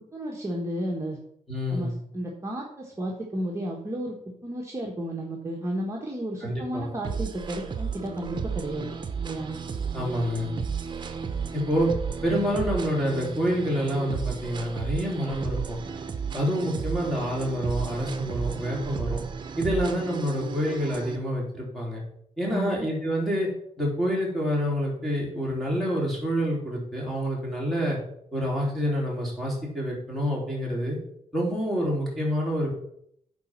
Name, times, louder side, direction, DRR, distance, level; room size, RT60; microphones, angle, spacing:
voice 1, 0.1-1.2 1.7-4.2 4.4-8.9 9.2-9.6 22.5-22.9, right 1 dB, 20° right, -2 dB, 1.2 m, -32 dB
voice 2, 1.5-2.0 6.4-6.9 9.9-10.5 11.5-11.9 12.2-15.8 16.3-19.2 19.6-22.0 22.4-23.5 23.8-28.0 28.3-31.0 31.3-32.7, equal, ahead, -4 dB, 3.4 m, -27 dB
sound 1, 7.0-21.2, right 6 dB, 40° right, 0.8 m, -33 dB
9.4 x 4.1 x 5.9 m, 0.72 s
wide cardioid pair, 125°, 13 cm